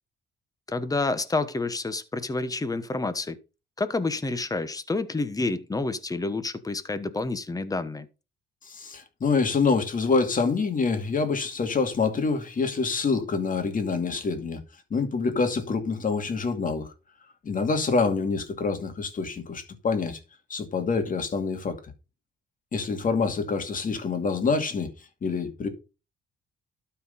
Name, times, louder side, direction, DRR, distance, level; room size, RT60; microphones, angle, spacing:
voice 1, 0.7-3.4 3.8-8.1, left 3 dB, 20° left, 1.2 m, -29 dB
voice 2, 8.6-14.6 14.9-16.9 17.4-20.2 20.5-21.8 22.7-24.9 25.2-25.7, left 4 dB, 40° left, 2.4 m, -26 dB
12.5 x 4.7 x 5.4 m
cardioid pair, 90°, 20 cm